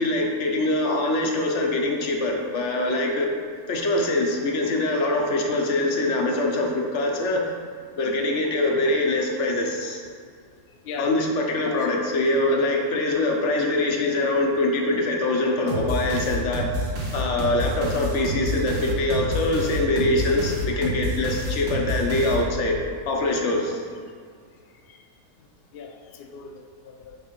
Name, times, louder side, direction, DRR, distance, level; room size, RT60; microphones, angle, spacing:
voice 1, 0.0-3.3 3.7-7.4 8.0-10.0 11.0-16.7 17.1-22.7 23.1-23.8, left 2 dB, 55° left, 1 dB, 1.0 m, -23 dB
voice 2, 10.8-11.2 11.7-11.8 24.9-25.0 25.7-27.2, left 5 dB, 75° left, 3 dB, 0.5 m, -39 dB
sound 1, 15.7-22.8, equal, 70° right, 1.5 m, -29 dB
7.9 x 3.2 x 5.2 m, 2.1 s
omnidirectional pair, 1.7 m